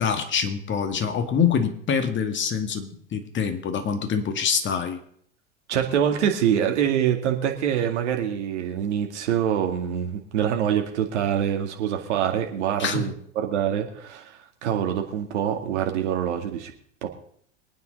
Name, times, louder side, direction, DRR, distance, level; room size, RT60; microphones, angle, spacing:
voice 1, 0.0-5.0 12.8-13.1, left 6 dB, 30° left, 7 dB, 2.1 m, -25 dB
voice 2, 5.7-16.7 17.0-17.1, right 9 dB, 65° right, 3 dB, 2.4 m, -25 dB
23.5 x 9.4 x 4.0 m, 0.64 s
hypercardioid pair, 90°, 37 cm